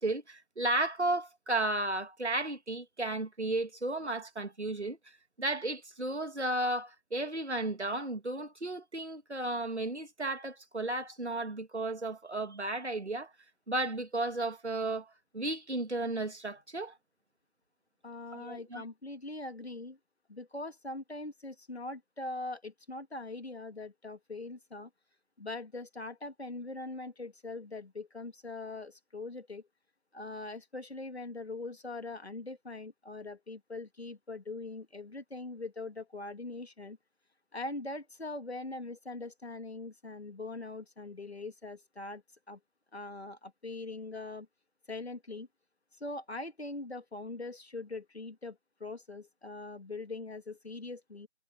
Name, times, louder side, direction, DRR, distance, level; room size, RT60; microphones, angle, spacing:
voice 1, 0.0-5.0 5.4-13.3 13.7-16.9 18.3-18.8, right 2 dB, 90° right, 2.6 m, -34 dB
voice 2, 18.0-20.0 20.3-24.9 25.4-29.6 30.1-37.0 37.5-42.6 42.9-44.5 44.9-45.5 46.0-51.3, left 2 dB, 70° left, 2.6 m, -42 dB
figure-of-eight pair, 175°, 33 cm